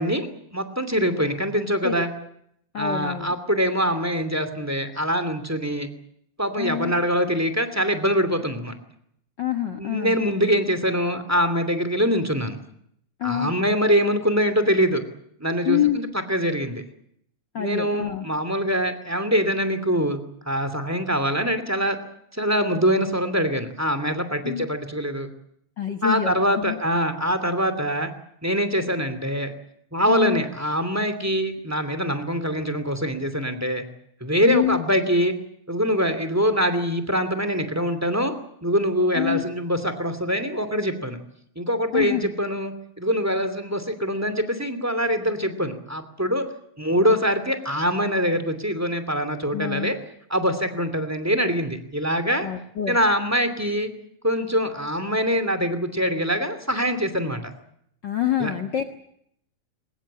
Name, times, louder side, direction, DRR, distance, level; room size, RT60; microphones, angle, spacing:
voice 1, 0.0-2.1 2.7-5.9 6.4-8.8 9.8-12.6 13.2-15.0 15.4-16.8 17.6-22.0 22.3-25.3 26.0-28.1 28.4-29.5 29.9-33.8 34.2-35.3 35.7-38.3 38.6-41.2 41.6-46.5 46.8-50.0 50.3-52.5 52.9-53.9 54.2-57.5 58.4-58.5, equal, 5° right, 9 dB, 2.3 m, -24 dB
voice 2, 2.7-3.3 6.6-6.9 9.4-10.2 13.2-13.5 15.6-16.0 17.5-18.3 24.4-24.7 25.8-26.8 30.1-30.4 34.4-34.8 39.1-39.4 41.9-42.3 49.5-49.9 52.4-53.0 58.0-58.8, left 11 dB, 50° left, 6 dB, 1.5 m, -26 dB
23.5 x 20.5 x 8.7 m, 0.72 s
omnidirectional pair, 3.3 m